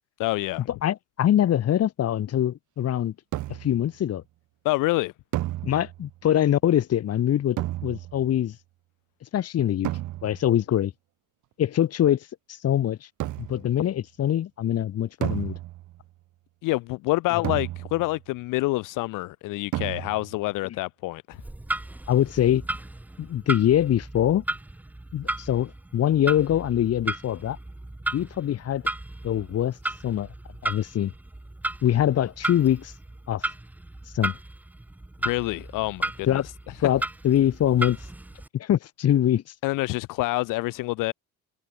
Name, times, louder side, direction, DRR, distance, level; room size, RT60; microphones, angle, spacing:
voice 1, 0.2-0.7 4.6-5.1 16.6-21.4 35.2-36.4 39.6-41.1, left 20 dB, 75° left, 0.7 m, -27 dB
voice 2, 0.8-3.1 3.5-4.2 5.6-8.6 9.3-9.9 10.2-10.9 11.6-12.3 12.6-13.0 13.4-15.5 20.6-20.8 22.1-22.7 23.2-24.4 25.1-27.6 28.1-28.8 29.2-29.7 30.0-30.3 30.6-31.1 31.8-32.9 33.3-33.5 34.1-34.4 36.3-36.5 36.8-38.0 38.5-39.4, left 11 dB, 50° left, 2.1 m, -23 dB
sound 1, 3.3-3.9 5.3-6.2 7.6-8.3 9.8-10.6 13.2-13.7 15.2-16.1 17.4-18.2 19.7-20.4, right 15 dB, 65° right, 1.2 m, -32 dB
Clock, 21.3-38.5, right 1 dB, 5° right, 0.6 m, -35 dB
cardioid pair, 135°, 32 cm